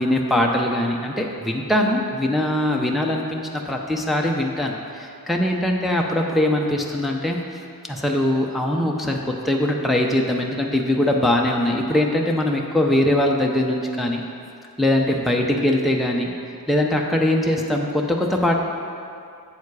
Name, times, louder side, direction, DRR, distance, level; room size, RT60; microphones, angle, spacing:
voice 1, 0.0-7.6 7.9-14.2 14.8-18.5, left 1 dB, ahead, 0 dB, 0.8 m, -22 dB
8.3 x 7.2 x 4.8 m, 2.4 s
wide cardioid pair, 45°, 36 cm